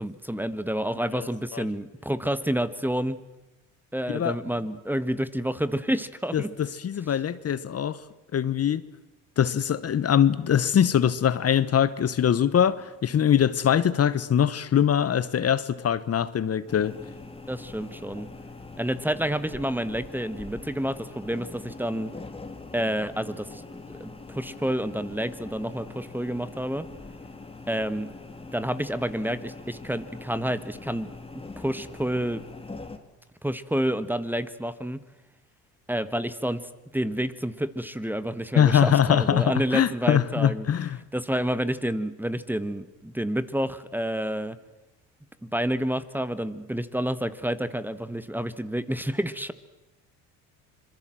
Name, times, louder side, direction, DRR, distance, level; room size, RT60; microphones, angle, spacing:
voice 1, 0.0-3.2 3.9-6.5 17.5-18.3 18.8-22.1 22.7-26.9 27.7-28.1 28.5-32.4 33.4-35.0 35.9-40.7 41.1-44.6 45.4-49.5, equal, 5° right, 14 dB, 1.3 m, -29 dB
voice 2, 6.3-8.0 8.3-8.8 9.4-17.0 38.6-41.0, left 9 dB, 40° left, 16 dB, 1.1 m, -23 dB
sound 1, 16.7-33.0, left 3 dB, 15° left, 2.8 m, -43 dB
26.0 x 22.0 x 7.6 m, 0.99 s
supercardioid pair, 85°, 36 cm